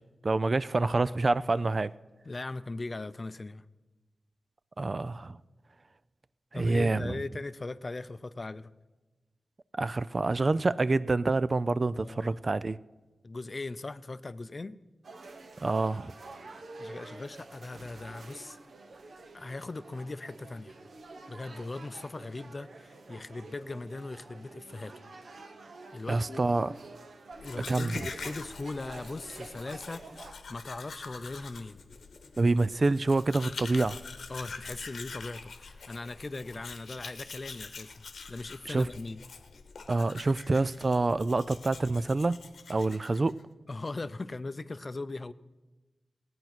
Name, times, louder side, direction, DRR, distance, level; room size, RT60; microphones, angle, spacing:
voice 1, 0.2-1.9 4.8-5.4 6.5-7.2 9.8-12.8 15.6-16.1 26.1-26.7 27.7-28.0 32.4-34.0 38.7-38.9 39.9-42.4 42.7-43.4, right 3 dB, 45° right, 0.3 m, -27 dB
voice 2, 2.2-3.6 6.5-8.7 12.0-12.4 13.2-14.8 16.8-18.6 19.3-20.8 21.3-24.9 25.9-26.4 27.4-31.8 34.3-39.2 43.7-45.3, left 3 dB, 40° left, 0.5 m, -39 dB
sound 1, 15.0-30.3, right 3 dB, 70° right, 1.0 m, -48 dB
Domestic sounds home sounds, 27.3-43.4, left 4 dB, 85° left, 1.0 m, -45 dB
16.5 x 9.3 x 5.9 m
wide cardioid pair, 70°, 0 cm